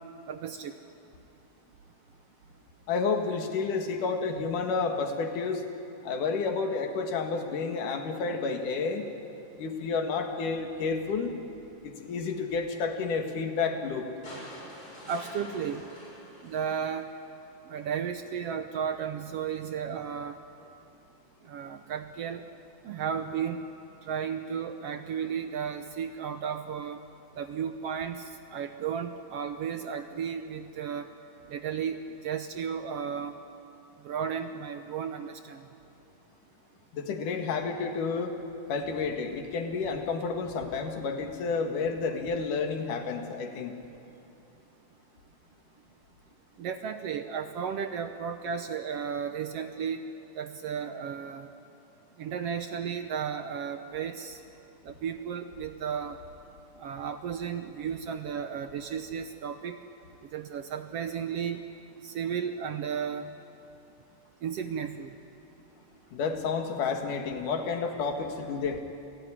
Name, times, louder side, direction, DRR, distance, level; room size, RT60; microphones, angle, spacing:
voice 1, 0.3-0.7 15.1-15.9 16.4-17.1 17.7-20.4 21.4-22.4 22.8-23.7 24.0-27.0 27.4-31.1 31.5-32.0 32.2-33.4 34.0-35.7 46.6-50.0 50.3-51.5 52.2-54.4 54.8-56.2 56.8-59.8 60.3-61.6 62.0-63.3 64.4-65.1, right 7 dB, 70° right, 8 dB, 1.6 m, -34 dB
voice 2, 2.9-5.6 6.0-9.1 9.6-11.4 11.8-14.1 36.9-38.3 38.7-43.8 66.1-68.8, left 4 dB, 85° left, 4 dB, 3.5 m, -30 dB
sound 1, 14.2-17.5 18.9-19.0, equal, 30° left, 8.3 m, -47 dB
28.5 x 17.0 x 10.0 m, 2.8 s
omnidirectional pair, 3.5 m